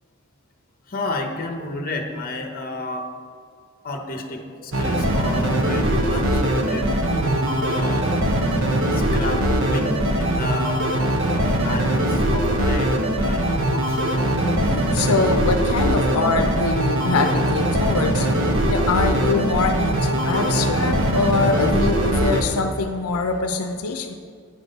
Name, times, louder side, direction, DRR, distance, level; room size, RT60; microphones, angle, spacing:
voice 1, 0.9-3.1 3.8-8.2 8.9-10.8 11.2-14.0, left 2 dB, 40° left, 4 dB, 1.0 m, -31 dB
sound 1, 4.7-22.4, right 1 dB, 60° right, 0.9 m, -21 dB
voice 2, 14.3-18.3 18.7-24.2, left 3 dB, 85° left, 6 dB, 0.6 m, -23 dB
8.6 x 6.2 x 5.2 m, 2.2 s
head